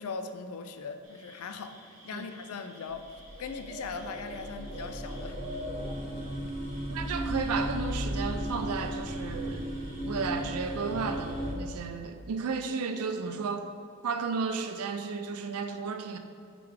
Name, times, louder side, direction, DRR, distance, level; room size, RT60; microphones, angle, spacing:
voice 1, 0.0-3.1 3.4-5.4, left 5 dB, 80° left, 8 dB, 0.4 m, -39 dB
sound 1, 1.0-11.5, equal, 60° right, 1.1 m, -47 dB
sound 2, 2.9-11.5, equal, 30° right, 0.7 m, -35 dB
voice 2, 6.9-9.7 10.1-13.7 14.0-16.2, right 5 dB, 90° right, 7 dB, 0.5 m, -33 dB
7.8 x 3.8 x 3.4 m, 2.2 s
head